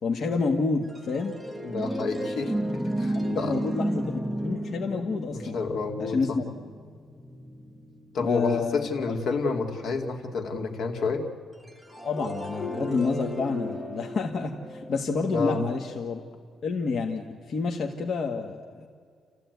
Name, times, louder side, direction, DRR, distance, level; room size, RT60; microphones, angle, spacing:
voice 1, 0.0-1.4 3.1-5.6 6.0-6.5 8.2-9.1 12.1-16.2 16.6-18.9, left 4 dB, 50° left, 1 dB, 1.6 m, -29 dB
sound 1, 0.9-8.5 11.7-15.8, equal, 5° left, 1.3 m, -33 dB
voice 2, 1.6-3.5 5.3-6.4 8.1-11.2 15.3-15.6, left 4 dB, 65° left, 4 dB, 2.4 m, -30 dB
29.5 x 15.0 x 9.4 m, 2.1 s
cardioid pair, 150°, 0 cm